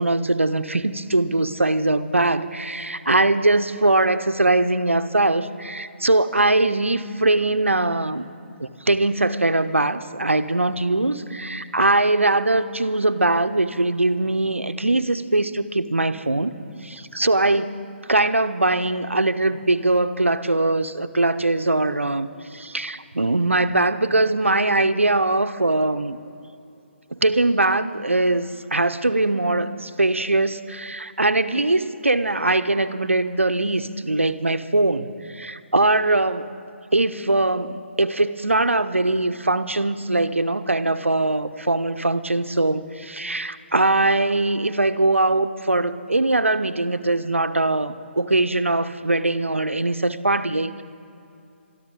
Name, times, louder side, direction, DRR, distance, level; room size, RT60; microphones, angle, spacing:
voice 1, 0.0-8.3 8.6-16.5 16.8-17.8 18.1-26.2 27.1-36.5 36.9-50.8, right 2 dB, 85° right, 11 dB, 0.7 m, -21 dB
23.5 x 13.0 x 3.9 m, 2.6 s
figure-of-eight pair, 140°, 7 cm